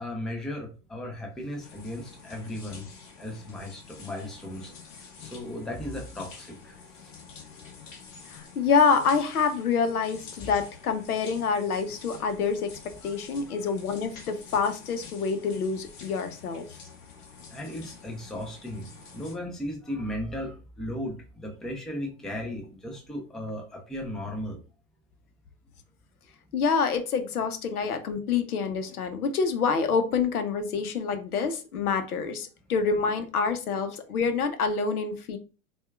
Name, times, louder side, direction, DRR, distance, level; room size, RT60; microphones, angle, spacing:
voice 1, 0.0-2.9 3.2-4.7 5.0-7.1 10.4-10.5 13.0-13.1 17.5-18.9 19.1-24.6, left 1 dB, ahead, 1 dB, 0.4 m, -36 dB
sound 1, 1.6-19.4, left 5 dB, 55° left, 1.4 m, -48 dB
voice 2, 8.3-16.7 26.5-35.4, left 5 dB, 85° left, 8 dB, 0.7 m, -27 dB
4.2 x 2.3 x 2.2 m, 0.35 s
hypercardioid pair, 100°, 43 cm